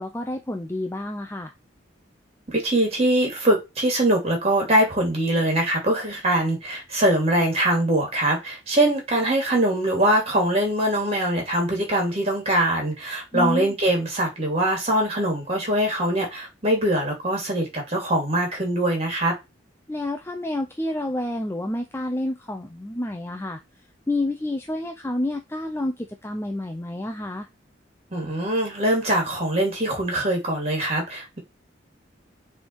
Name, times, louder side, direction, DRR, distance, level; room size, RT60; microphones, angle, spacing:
voice 1, 0.0-1.5 13.3-13.7 19.9-23.6 24.1-27.5, left 1 dB, 15° left, 0.6 m, -29 dB
voice 2, 2.5-19.3 28.1-31.4, right 1 dB, 35° right, 2.8 m, -22 dB
6.7 x 3.6 x 4.6 m
head